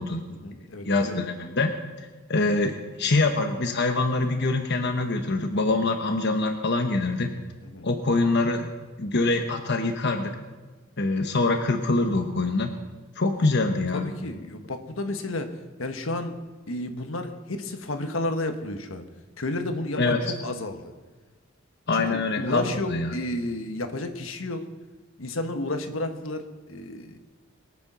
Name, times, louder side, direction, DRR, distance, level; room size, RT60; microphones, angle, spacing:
voice 1, 0.3-1.2 7.6-7.9 13.9-16.3 16.7-19.1 19.4-20.9 21.9-24.6 25.2-27.2, left 2 dB, 75° left, 6 dB, 1.3 m, -32 dB
voice 2, 0.8-1.7 2.3-7.3 7.8-8.7 9.0-10.3 11.0-12.7 13.2-14.1 20.0-20.2 21.9-23.2, left 3 dB, 55° left, 5 dB, 1.1 m, -24 dB
22.0 x 8.5 x 6.2 m, 1.3 s
head